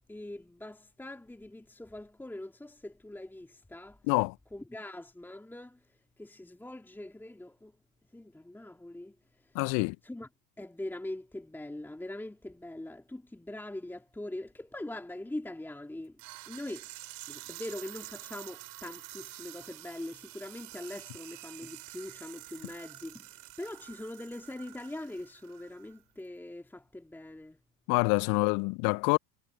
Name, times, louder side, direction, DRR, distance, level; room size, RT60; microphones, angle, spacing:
voice 1, 0.1-4.0 4.5-5.8 6.2-7.7 8.1-9.2 9.4-9.6 10.0-10.3 10.6-16.2 16.5-16.9 17.3-27.6, left 1 dB, 5° left, 2.6 m, -42 dB
voice 2, 9.5-10.0 27.9-29.2, left 34 dB, 40° left, 0.9 m, -26 dB
sound 1, 16.2-26.0, right 21 dB, 45° right, 5.2 m, -48 dB
figure-of-eight pair, 85°, 46 cm